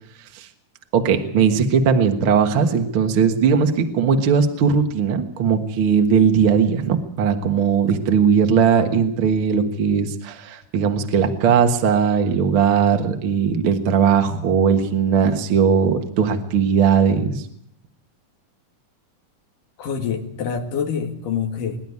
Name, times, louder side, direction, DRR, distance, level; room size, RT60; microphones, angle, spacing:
voice 1, 0.9-17.4, right 6 dB, 50° right, 6 dB, 2.0 m, -18 dB
voice 2, 19.8-21.8, left 7 dB, 85° left, 5 dB, 3.6 m, -26 dB
24.0 x 11.5 x 9.6 m, 0.76 s
omnidirectional pair, 3.7 m